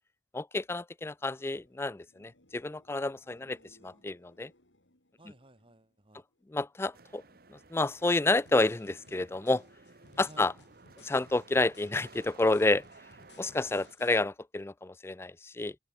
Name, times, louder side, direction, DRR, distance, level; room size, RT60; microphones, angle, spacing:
voice 1, 0.3-3.6 3.8-4.5 6.5-7.2 7.5-9.6 10.2-10.5 11.0-12.8 13.4-15.8, left 2 dB, 15° left, 0.3 m, -29 dB
sound 1, 1.1-6.8 7.2-7.8 14.8-14.9, left 1 dB, 85° left, 5.5 m, -68 dB
voice 2, 3.4-4.1 5.2-6.2 10.2-10.5, right 1 dB, 30° right, 1.6 m, -57 dB
sound 2, 6.9-13.9, right 3 dB, 55° right, 1.4 m, -56 dB
sound 3, 8.0-14.2, left 3 dB, 70° left, 4.6 m, -60 dB
open air
head